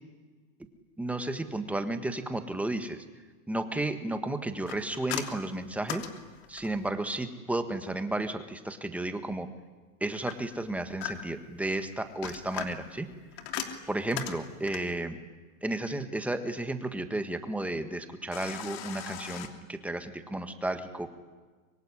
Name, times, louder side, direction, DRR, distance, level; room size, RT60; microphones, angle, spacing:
voice 1, 1.0-3.0 3.5-6.1 6.5-9.5 10.0-13.1 13.9-15.2 15.6-21.1, right 2 dB, 5° right, 8 dB, 1.5 m, -33 dB
sound 1, 4.7-6.9 10.3-11.5 12.0-15.0 18.3-19.5, left 10 dB, 50° left, 3.0 m, -39 dB
24.5 x 24.0 x 9.9 m, 1.3 s
supercardioid pair, 155°, 42 cm